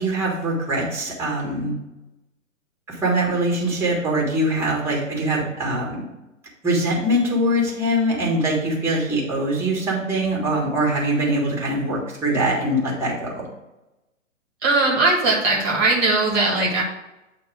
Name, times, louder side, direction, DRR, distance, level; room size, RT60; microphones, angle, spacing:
voice 1, 0.0-1.7 2.9-6.0 6.6-13.4, right 1 dB, 5° right, -3 dB, 1.7 m, -23 dB
voice 2, 14.6-16.8, right 3 dB, 25° right, -2 dB, 1.5 m, -19 dB
8.5 x 2.9 x 6.2 m, 0.97 s
figure-of-eight pair, 125°, 40 cm